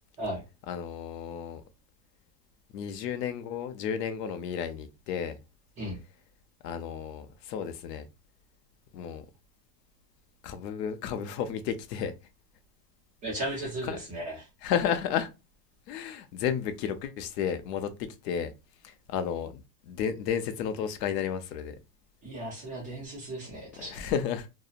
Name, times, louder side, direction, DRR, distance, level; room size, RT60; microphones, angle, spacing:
voice 1, 0.7-1.6 2.7-5.4 6.6-8.1 8.9-9.3 10.4-12.1 13.8-14.0 14.6-15.3 15.9-18.5 18.8-21.8 23.8-24.5, left 8 dB, 75° left, 0.6 m, -32 dB
voice 2, 13.2-14.5 22.2-24.1, right 1 dB, 15° right, 0.6 m, -36 dB
2.7 x 2.1 x 2.4 m
supercardioid pair, 165°, 49 cm